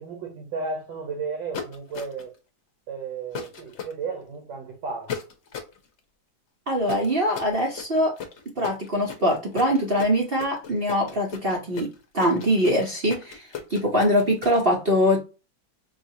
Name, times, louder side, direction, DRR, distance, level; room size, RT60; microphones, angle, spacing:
voice 1, 0.0-2.3 2.9-5.1, right 4 dB, 80° right, 1.7 m, -33 dB
sound 1, 1.5-2.4 3.3-3.9 5.1-5.8 6.9-14.6, left 7 dB, 55° left, 0.8 m, -36 dB
voice 2, 6.7-8.1 8.6-15.2, equal, 50° right, 0.7 m, -23 dB
5.1 x 2.4 x 2.7 m
omnidirectional pair, 2.0 m